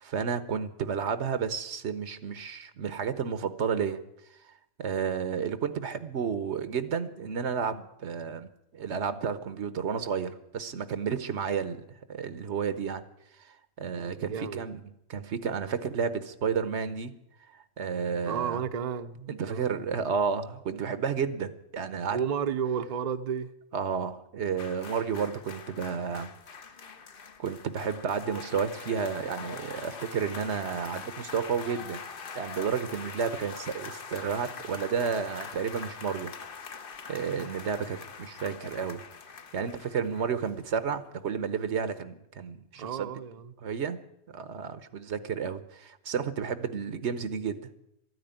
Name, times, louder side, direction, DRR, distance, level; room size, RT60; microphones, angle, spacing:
voice 1, 0.0-4.0 4.8-13.0 13.4-14.8 15.1-17.1 17.8-18.6 19.3-22.2 23.7-26.3 27.4-32.0 32.3-36.3 37.1-39.0 39.5-43.1 43.6-44.0 44.3-47.7, right 6 dB, 75° right, 1.2 m, -31 dB
voice 2, 14.1-14.6 18.3-19.7 22.1-23.5 42.8-43.5, right 7 dB, 45° right, 0.6 m, -32 dB
sound 1, 24.6-40.9 41.1-41.3, left 5 dB, 55° left, 1.0 m, -43 dB
13.0 x 9.5 x 9.0 m
omnidirectional pair, 1.2 m